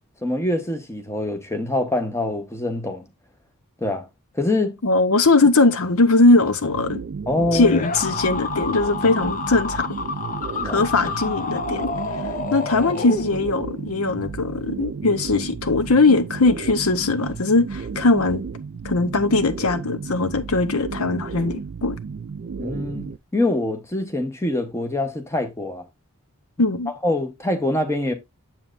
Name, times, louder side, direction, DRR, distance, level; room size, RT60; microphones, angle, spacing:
voice 1, 0.2-3.1 3.8-4.1 4.3-4.8 7.3-7.8 10.6-10.9 12.4-12.7 22.6-25.8 26.6-26.7 27.0-28.1, left 1 dB, 10° left, 1.0 m, -25 dB
voice 2, 4.8-7.0 7.5-9.9 10.6-11.9 12.5-18.4 18.8-22.0 26.6-26.9, left 3 dB, 75° left, 0.8 m, -20 dB
sound 1, 6.7-23.2, right 5 dB, 50° right, 0.3 m, -33 dB
sound 2, 7.6-13.7, left 4 dB, 35° left, 0.6 m, -29 dB
7.5 x 7.2 x 2.5 m
head